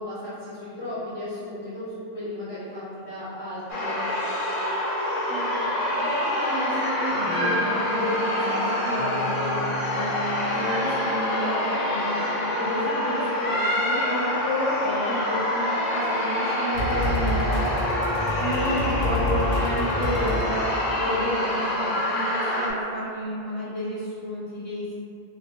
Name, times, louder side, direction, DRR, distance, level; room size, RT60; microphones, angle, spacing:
voice 1, 0.0-4.0 21.4-22.0, left 1 dB, 25° left, -14 dB, 1.3 m, -35 dB
sound 1, 3.7-22.7, left 1 dB, 50° left, 0.6 m, -26 dB
voice 2, 5.3-5.7 5.9-9.6 9.9-17.4 18.0-18.1 18.4-25.0, equal, 70° left, -12 dB, 1.3 m, -31 dB
sound 2, 7.1-11.0, right 1 dB, 60° right, 0.7 m, -37 dB
sound 3, 16.7-20.9, left 1 dB, 90° left, 0.9 m, -28 dB
4.2 x 2.1 x 3.0 m, 2.5 s
omnidirectional pair, 1.1 m